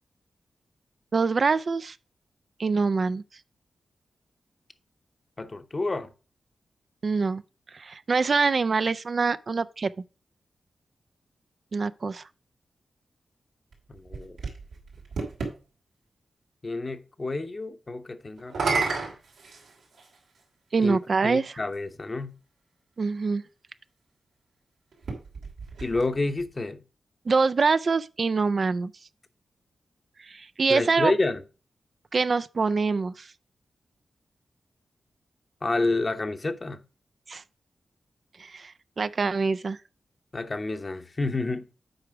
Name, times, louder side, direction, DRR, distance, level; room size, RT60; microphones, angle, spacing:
voice 1, 1.1-2.0 2.6-3.2 7.0-7.4 7.7-9.9 11.7-12.2 20.7-21.6 23.0-23.4 27.3-28.9 30.3-31.1 32.1-33.3 37.3-37.4 38.4-39.8, right 4 dB, 55° right, 0.4 m, -25 dB
voice 2, 5.4-6.1 13.9-14.4 16.6-19.1 20.8-21.0 21.2-22.4 25.8-26.8 30.7-31.4 35.6-36.8 40.3-41.7, left 2 dB, 40° left, 0.9 m, -29 dB
sound 1, 13.7-15.6 18.4-20.2 21.1-21.2 24.9-26.5, right 4 dB, 90° right, 2.8 m, -32 dB
7.9 x 4.9 x 4.6 m
cardioid pair, 60°, 0 cm